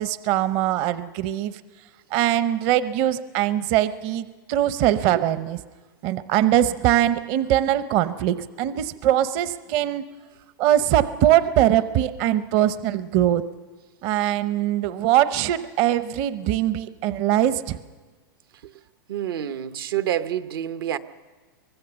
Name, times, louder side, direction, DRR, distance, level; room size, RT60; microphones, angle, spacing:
voice 1, 0.0-1.6 2.1-5.6 6.0-10.0 10.6-13.4 14.0-17.8, right 12 dB, 50° right, 13 dB, 0.7 m, -22 dB
voice 2, 19.1-21.0, right 11 dB, 80° right, 11 dB, 0.9 m, -27 dB
24.5 x 18.5 x 6.9 m, 1.3 s
hypercardioid pair, 125°, 12 cm